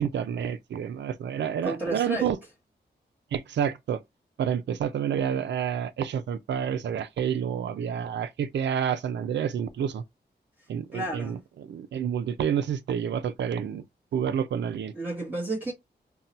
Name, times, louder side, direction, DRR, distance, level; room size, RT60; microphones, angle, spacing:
voice 1, 0.0-2.4 3.3-4.0 4.4-10.0 10.7-13.8 14.1-14.9, right 8 dB, 90° right, 0.4 m, -29 dB
voice 2, 1.6-2.3 10.9-11.4 14.9-15.7, right 2 dB, 10° right, 1.1 m, -31 dB
2.7 x 2.2 x 4.0 m
wide cardioid pair, 95°, 18 cm